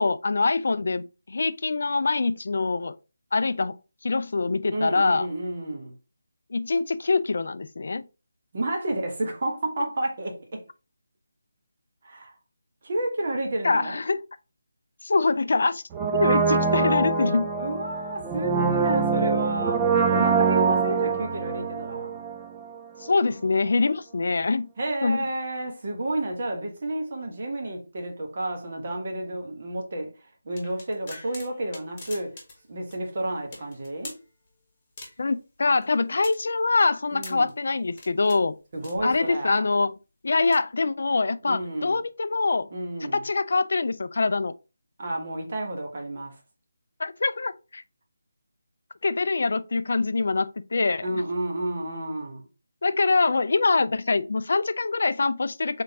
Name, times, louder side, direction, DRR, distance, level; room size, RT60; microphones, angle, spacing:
voice 1, 0.0-3.0 3.3-3.8 4.0-5.3 6.5-8.0 13.6-14.2 15.0-15.8 16.1-17.4 23.0-24.7 25.0-25.2 35.2-38.6 39.0-39.9 40.2-42.7 43.1-44.5 47.0-47.8 49.0-51.2 52.8-55.8, left 3 dB, 50° left, 0.3 m, -24 dB
voice 2, 4.7-5.9 8.5-10.6 12.0-12.3 12.8-14.0 17.5-22.2 24.8-32.3 32.7-34.2 37.1-37.5 38.7-39.7 41.4-42.0 42.7-43.2 45.0-46.3 51.0-52.5, right 1 dB, 40° right, 1.3 m, -31 dB
Brass instrument, 15.9-22.8 23.0-23.1, right 5 dB, 15° right, 0.5 m, -24 dB
sound 1, 30.6-32.6 32.9-33.0 33.5-34.2 35.0-35.4 35.8-37.5 37.9-38.4 38.8-39.4 40.3-40.6, left 2 dB, 25° left, 1.3 m, -43 dB
3.7 x 3.6 x 3.5 m
figure-of-eight pair, 155°, 0 cm